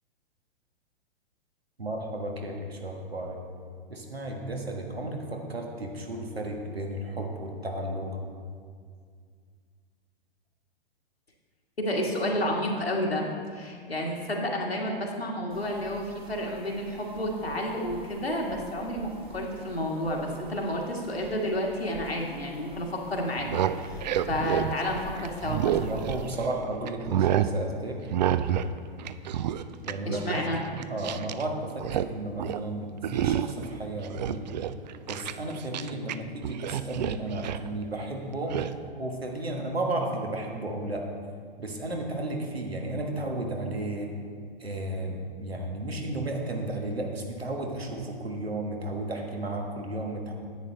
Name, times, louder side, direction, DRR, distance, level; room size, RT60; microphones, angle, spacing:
voice 1, 1.8-3.4 3.9-8.1 25.8-28.0 29.8-30.5 30.9-34.4 35.1-38.6 39.0-41.0 41.6-44.1 44.6-50.3, right 1 dB, 85° right, 1 dB, 1.5 m, -33 dB
voice 2, 11.8-13.3 13.5-26.1 30.0-30.6, left 1 dB, 85° left, -1 dB, 1.8 m, -31 dB
sound 1, 15.5-26.4, right 1 dB, 20° right, 1.0 m, -47 dB
sound 2, 23.3-26.5 26.9-27.5 28.1-28.7 29.0-31.4 31.7-32.1 32.4-32.6 33.0-33.7 34.0-36.2 36.4-37.7 38.5-38.7, right 10 dB, 45° right, 0.4 m, -29 dB
10.5 x 8.4 x 3.9 m, 2.1 s
figure-of-eight pair, 110°, 30 cm